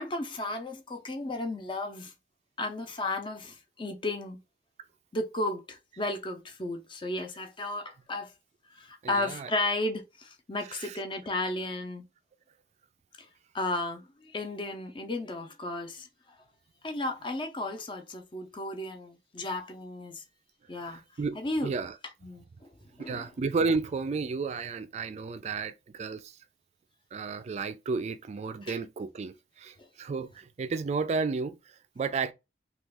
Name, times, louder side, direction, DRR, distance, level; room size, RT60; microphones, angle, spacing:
voice 1, 0.0-2.1 2.6-4.4 5.1-8.3 8.7-12.0 13.5-16.1 16.8-20.2 20.7-21.0 21.3-21.7 22.2-22.7 23.0-23.3 28.6-28.8, left 2 dB, 30° left, 0.6 m, -34 dB
voice 2, 9.0-9.5 10.7-11.0 20.8-22.0 23.1-26.4 27.1-32.3, right 4 dB, 40° right, 0.3 m, -32 dB
3.0 x 2.3 x 3.4 m
head